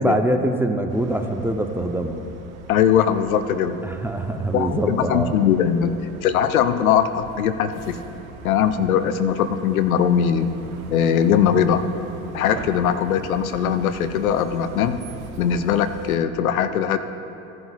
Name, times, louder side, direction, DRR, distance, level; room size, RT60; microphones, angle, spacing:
voice 1, 0.0-2.2 3.8-5.3, right 1 dB, 5° right, 5 dB, 0.7 m, -23 dB
sound 1, 0.9-16.2, right 6 dB, 80° right, 0.9 m, -40 dB
voice 2, 2.7-3.8 4.5-5.9 6.2-8.0 8.4-10.5 10.9-11.8 12.3-15.0 15.4-17.0, left 8 dB, 80° left, 11 dB, 0.6 m, -20 dB
16.0 x 10.5 x 2.4 m, 3.0 s
figure-of-eight pair, 65°, 41 cm